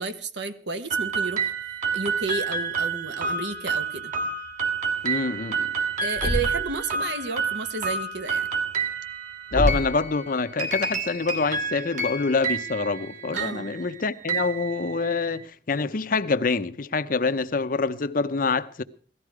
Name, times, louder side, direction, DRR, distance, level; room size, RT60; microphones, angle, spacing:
voice 1, 0.0-1.5 1.9-4.1 6.0-8.5 13.3-13.7, right 4 dB, 70° right, 1.3 m, -32 dB
sound 1, 0.9-15.4, right 4 dB, 45° right, 2.4 m, -29 dB
voice 2, 5.0-5.7 9.5-15.4 15.7-18.8, left 4 dB, 50° left, 0.7 m, -26 dB
Thump thud, 6.2-6.8 9.5-10.0, equal, 10° right, 1.0 m, -26 dB
17.5 x 13.5 x 4.8 m
head